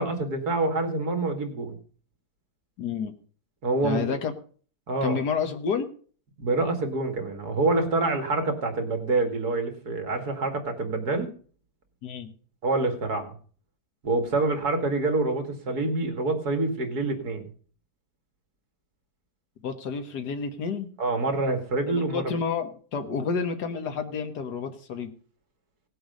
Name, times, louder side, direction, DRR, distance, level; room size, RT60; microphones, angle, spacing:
voice 1, 0.0-1.8 3.6-4.1 4.9-5.2 6.4-11.3 12.6-13.3 14.0-17.5 21.0-22.2, right 2 dB, 75° right, 6 dB, 2.8 m, -26 dB
voice 2, 2.8-3.1 3.8-4.3 5.0-5.9 12.0-12.3 19.6-20.9 21.9-25.1, left 6 dB, 90° left, 7 dB, 1.9 m, -30 dB
17.5 x 7.8 x 5.2 m, 0.43 s
omnidirectional pair, 1.7 m